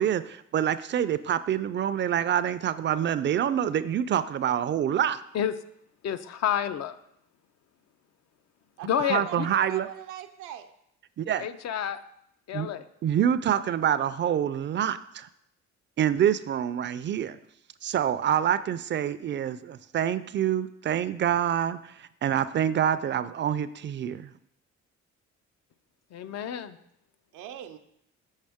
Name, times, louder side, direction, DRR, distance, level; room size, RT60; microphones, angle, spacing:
voice 1, 0.0-5.2 9.1-9.9 11.2-11.5 12.5-12.7 13.0-15.3 16.0-17.4 17.8-24.3, right 9 dB, 40° right, 13 dB, 0.4 m, -26 dB
voice 2, 6.0-7.0 8.8-9.5 11.4-12.0 12.5-12.8 26.1-26.8, left 9 dB, 60° left, 12 dB, 0.5 m, -29 dB
voice 3, 8.8-10.7 26.3-26.4 27.3-27.8, right 11 dB, 90° right, 6 dB, 0.6 m, -40 dB
6.4 x 5.2 x 3.5 m, 0.76 s
cardioid pair, 90°, 30 cm